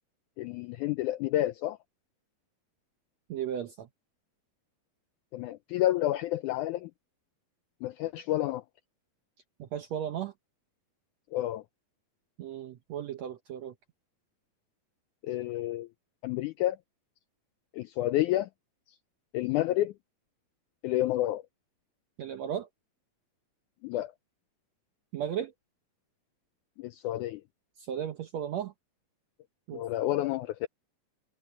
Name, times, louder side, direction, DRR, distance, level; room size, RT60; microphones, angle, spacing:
voice 1, 0.4-1.8 5.3-6.9 7.8-8.6 11.3-11.6 15.2-15.9 16.2-16.8 17.7-18.5 19.3-19.9 20.8-21.4 23.8-24.1 26.8-27.4 29.7-30.7, left 14 dB, 85° left, 1.7 m, -29 dB
voice 2, 3.3-3.9 9.6-10.3 12.4-13.7 22.2-22.7 25.1-25.5 27.8-28.7 29.7-29.8, right 9 dB, 70° right, 1.6 m, -35 dB
open air
omnidirectional pair, 4.1 m